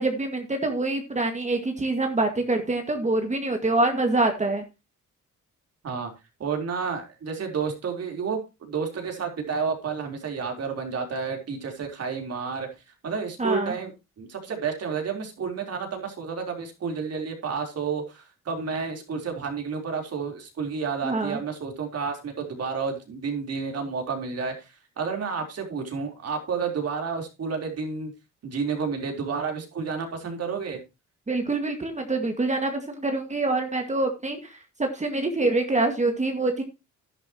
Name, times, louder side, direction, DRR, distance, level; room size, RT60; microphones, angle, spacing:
voice 1, 0.0-4.6 13.4-13.7 21.0-21.4 31.3-36.6, right 2 dB, 25° right, 5 dB, 2.0 m, -25 dB
voice 2, 6.4-12.7 13.0-24.7 25.0-28.1 28.4-30.8, right 5 dB, 55° right, 3 dB, 3.9 m, -30 dB
11.0 x 11.0 x 3.0 m, 0.26 s
cardioid pair, 90°, 30 cm